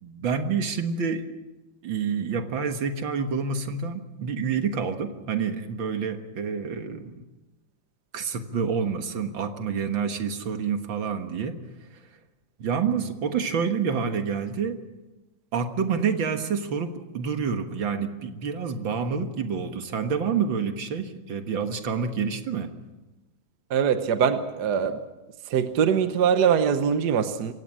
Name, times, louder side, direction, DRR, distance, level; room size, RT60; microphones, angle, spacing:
voice 1, 0.0-1.3 1.8-7.2 8.1-11.6 12.6-14.8 15.5-22.7, right 6 dB, 75° right, 7 dB, 2.3 m, -28 dB
voice 2, 23.7-25.0 25.5-27.5, right 7 dB, 60° right, 9 dB, 1.6 m, -22 dB
27.0 x 16.5 x 7.5 m, 1.1 s
omnidirectional pair, 2.2 m